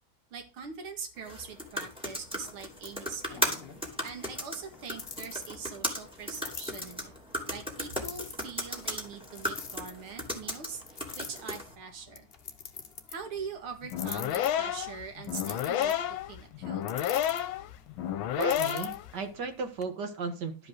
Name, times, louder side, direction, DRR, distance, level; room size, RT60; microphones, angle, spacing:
voice 1, 0.3-3.6 4.0-7.1 7.5-12.3 13.1-15.9 16.3-17.0, right 5 dB, 80° right, 4 dB, 2.6 m, -42 dB
sound 1, 1.2-11.7, left 1 dB, ahead, 2.6 m, -37 dB
sound 2, 2.3-19.8, left 6 dB, 40° left, 0.9 m, -47 dB
sound 3, 13.8-19.1, left 11 dB, 75° left, 1.5 m, -31 dB
voice 2, 18.4-20.7, right 4 dB, 55° right, 7 dB, 2.0 m, -35 dB
12.5 x 5.2 x 6.4 m, 0.32 s
omnidirectional pair, 2.3 m